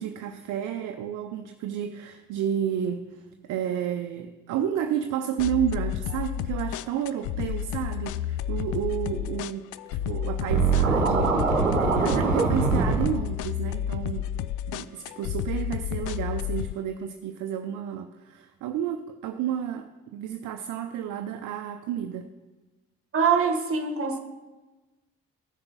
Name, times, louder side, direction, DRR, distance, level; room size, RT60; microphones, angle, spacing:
voice 1, 0.0-14.3 14.7-22.3, right 9 dB, 55° right, 0.6 m, -31 dB
sound 1, 5.4-16.7, left 11 dB, 55° left, 0.4 m, -31 dB
Scratching (performance technique), 10.5-13.1, right 4 dB, 85° right, 0.8 m, -22 dB
voice 2, 23.1-24.2, right 6 dB, 35° right, 1.3 m, -23 dB
14.5 x 6.7 x 4.0 m
figure-of-eight pair, 40°, 38 cm